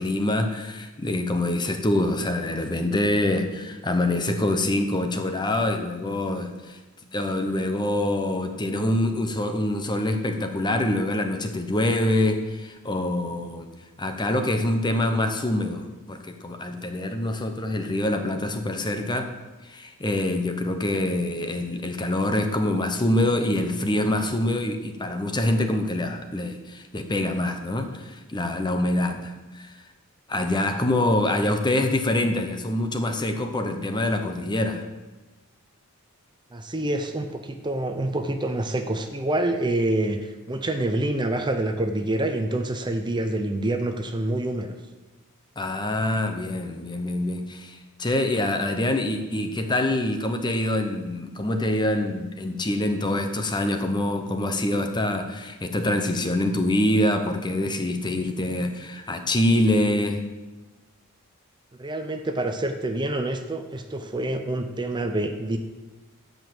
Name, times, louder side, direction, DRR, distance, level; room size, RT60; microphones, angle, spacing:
voice 1, 0.0-6.8 7.1-13.7 14.0-19.3 19.6-29.8 30.3-34.9 45.6-60.2, left 1 dB, 20° left, 6 dB, 0.8 m, -25 dB
voice 2, 36.5-44.7 61.8-65.6, right 1 dB, 20° right, 6 dB, 0.7 m, -27 dB
13.5 x 5.3 x 7.8 m, 1.2 s
head